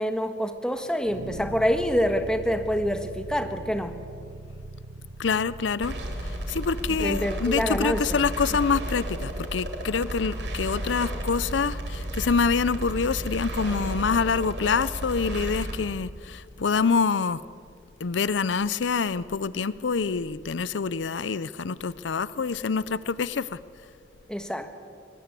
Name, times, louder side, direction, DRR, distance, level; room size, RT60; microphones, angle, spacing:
voice 1, 0.0-3.9 7.0-8.2 24.3-24.8, equal, 5° left, 7 dB, 1.4 m, -26 dB
sound 1, 1.1-10.2, right 2 dB, 85° right, 0.8 m, -43 dB
voice 2, 5.2-6.0 6.2-17.4 18.0-23.6, left 5 dB, 80° left, 17 dB, 0.6 m, -26 dB
sound 2, 5.8-15.8, right 1 dB, 65° right, 3.4 m, -33 dB
23.0 x 20.0 x 8.3 m, 2.4 s
head